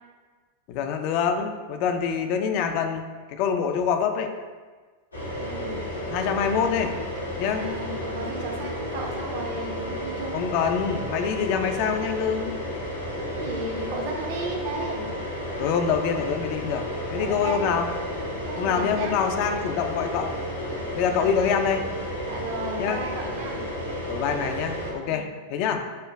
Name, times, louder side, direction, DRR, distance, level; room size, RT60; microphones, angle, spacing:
voice 1, 0.7-3.0 3.3-4.3 6.1-7.0 7.4-7.7 8.9-9.1 10.3-12.6 15.6-17.9 18.6-20.3 20.9-21.9 22.8-23.0 24.1-25.8, left 7 dB, 45° left, 6 dB, 0.3 m, -25 dB
sound 1, 5.1-24.9, equal, 80° left, 0.8 m, -32 dB
voice 2, 5.4-5.8 7.5-10.4 13.4-15.0 17.1-17.6 18.5-19.1 21.0-21.3 22.2-23.6 25.0-25.2 25.7-25.8, right 2 dB, 50° right, 1 dB, 0.6 m, -34 dB
6.5 x 2.2 x 2.3 m, 1.4 s
figure-of-eight pair, 90°, 0 cm